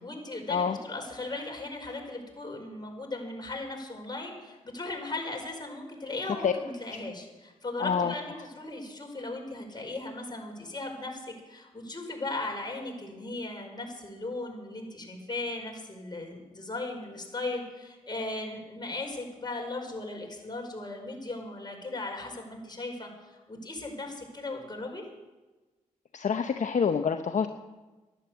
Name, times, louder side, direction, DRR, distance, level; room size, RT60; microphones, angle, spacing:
voice 1, 0.0-25.0, left 2 dB, 30° left, 1 dB, 5.1 m, -37 dB
voice 2, 7.8-8.1 26.1-27.5, left 6 dB, 60° left, 7 dB, 0.8 m, -27 dB
12.0 x 11.5 x 8.2 m, 1.2 s
supercardioid pair, 40°, 15 cm